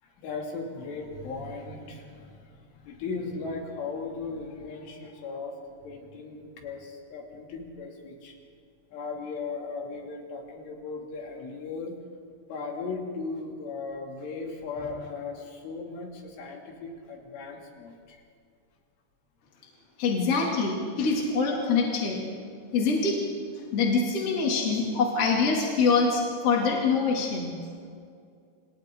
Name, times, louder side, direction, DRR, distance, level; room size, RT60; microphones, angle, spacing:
voice 1, 0.0-8.4 8.9-12.0 12.5-18.2, left 4 dB, 70° left, 0 dB, 5.0 m, -37 dB
voice 2, 20.0-22.2 22.7-23.1 23.5-27.5, left 4 dB, 40° left, -3 dB, 2.7 m, -25 dB
30.0 x 28.0 x 3.8 m, 2.3 s
omnidirectional pair, 6.0 m